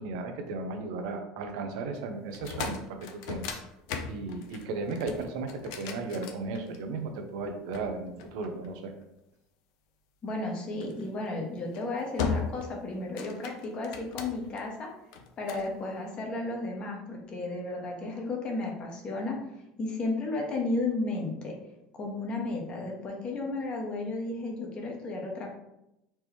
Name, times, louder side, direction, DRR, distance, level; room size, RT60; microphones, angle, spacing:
voice 1, 0.0-3.5 4.1-8.9, right 3 dB, 80° right, 5 dB, 0.7 m, -35 dB
sound 1, 2.3-7.0 7.7-9.0 10.8-11.1 11.6-11.8 12.2-12.7 13.0-14.6 15.1-15.7, left 6 dB, 75° left, 0.6 m, -37 dB
voice 2, 10.2-14.9 15.4-19.4 19.8-21.5 22.0-25.5, left 2 dB, 35° left, 0 dB, 1.2 m, -33 dB
4.4 x 3.0 x 3.5 m, 0.85 s
supercardioid pair, 125°, 3 cm